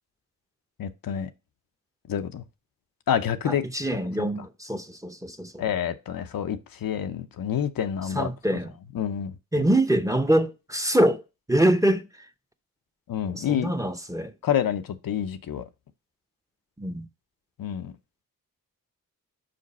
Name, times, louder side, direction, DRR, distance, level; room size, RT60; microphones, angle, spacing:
voice 1, 0.8-1.3 2.1-2.4 3.1-3.6 4.2-4.3 5.6-8.3 8.9-9.7 13.1-13.7 14.4-15.6 17.6-17.9, left 9 dB, 75° left, 0.7 m, -28 dB
voice 2, 3.4-5.6 8.1-8.7 9.5-11.2 11.5-12.3 13.3-14.3 16.8-17.1, right 1 dB, 10° right, 0.8 m, -24 dB
5.2 x 5.1 x 4.1 m
cardioid pair, 60°, 34 cm